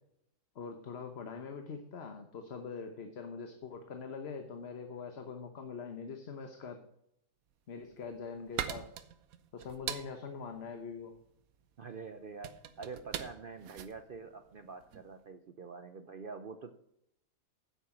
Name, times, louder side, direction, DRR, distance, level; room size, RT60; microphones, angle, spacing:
voice 1, 0.5-6.8 7.7-8.9 9.5-11.1, left 5 dB, 50° left, 6 dB, 1.2 m, -43 dB
sound 1, 7.7-15.1, right 9 dB, 80° right, 1.2 m, -43 dB
voice 2, 11.8-16.7, right 5 dB, 55° right, 9 dB, 0.6 m, -46 dB
9.9 x 8.0 x 5.9 m, 0.78 s
omnidirectional pair, 1.5 m